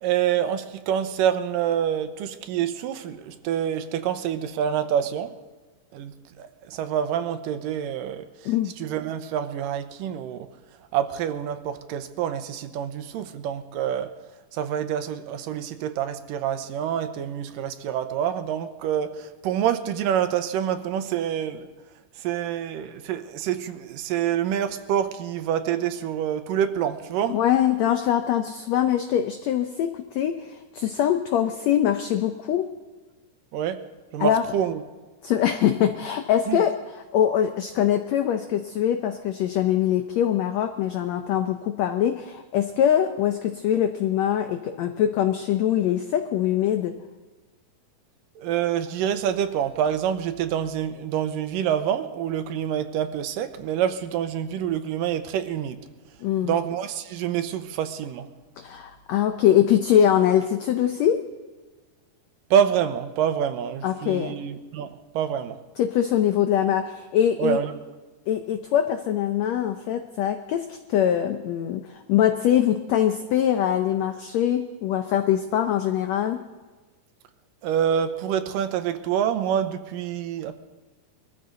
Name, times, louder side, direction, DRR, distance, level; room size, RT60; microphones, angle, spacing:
voice 1, 0.0-5.4 5.9-8.3 8.8-10.5 10.9-14.1 14.5-21.7 22.2-27.4 33.5-33.8 34.1-34.8 36.5-36.6 48.4-55.8 56.4-58.3 62.5-65.6 67.4-67.7 77.6-80.6, right 9 dB, 85° right, 2.5 m, -27 dB
voice 2, 27.3-32.7 34.2-34.4 35.2-46.9 56.2-56.5 58.6-61.2 63.8-64.3 65.8-67.6 68.3-76.4, left 10 dB, 75° left, 1.6 m, -23 dB
23.0 x 14.5 x 3.9 m
omnidirectional pair, 3.8 m